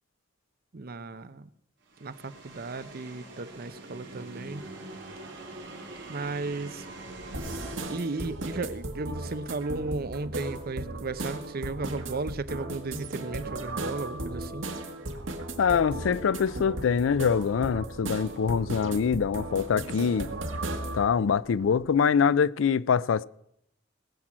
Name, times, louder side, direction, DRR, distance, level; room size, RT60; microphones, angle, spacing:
voice 1, 0.7-1.5 2.0-4.6 6.1-6.9 7.9-14.7, right 3 dB, 50° right, 0.7 m, -35 dB
sound 1, 1.9-7.8, right 2 dB, 65° right, 3.1 m, -43 dB
sound 2, 7.3-21.1, right 2 dB, 80° right, 1.7 m, -36 dB
voice 2, 15.6-20.3 20.9-23.2, left 6 dB, 85° left, 0.4 m, -24 dB
sound 3, 15.8-21.9, right 1 dB, 25° right, 1.4 m, -52 dB
19.5 x 7.5 x 6.1 m
head